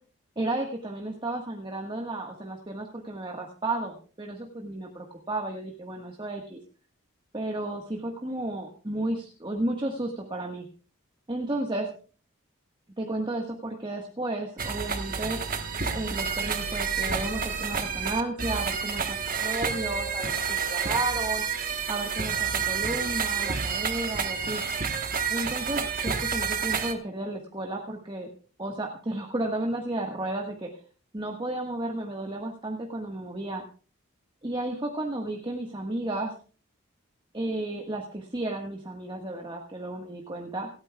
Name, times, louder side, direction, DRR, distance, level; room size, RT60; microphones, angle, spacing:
voice 1, 0.3-6.6 7.3-10.6 11.3-11.9 13.0-15.4 15.9-21.4 21.9-24.6 25.3-28.3 28.6-30.7 31.1-33.6 34.4-36.3 37.3-40.7, right 2 dB, 20° right, 1 dB, 1.5 m, -33 dB
sound 1, 14.6-26.9, right 6 dB, 40° right, 1.4 m, -29 dB
28.5 x 9.6 x 2.4 m, 0.38 s
head